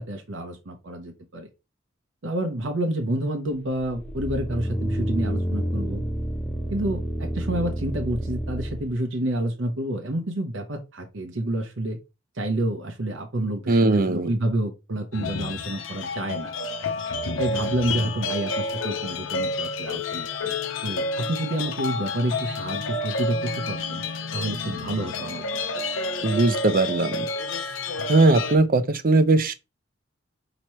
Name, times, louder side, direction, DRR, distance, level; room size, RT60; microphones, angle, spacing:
voice 1, 0.0-1.5 2.2-6.0 6.7-12.0 12.4-16.5 17.4-20.5 20.8-24.0 24.3-25.4, right 1 dB, 75° right, 0.8 m, -29 dB
sound 1, 3.8-8.9, right 1 dB, 5° left, 0.8 m, -29 dB
voice 2, 13.7-14.3 26.2-27.3 28.1-29.5, right 2 dB, 45° right, 0.5 m, -19 dB
sound 2, 15.1-28.6, left 3 dB, 85° left, 0.6 m, -30 dB
5.5 x 3.0 x 3.0 m
head